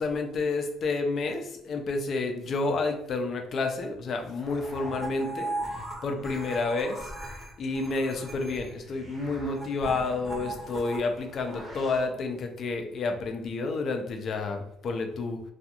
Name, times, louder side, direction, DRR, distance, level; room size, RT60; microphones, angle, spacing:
voice 1, 0.0-7.1 7.6-15.4, left 3 dB, 50° left, 4 dB, 0.5 m, -30 dB
sound 1, 4.4-12.1, right 1 dB, 20° right, 0.7 m, -39 dB
2.4 x 2.3 x 2.8 m, 0.79 s
cardioid pair, 95°, 0 cm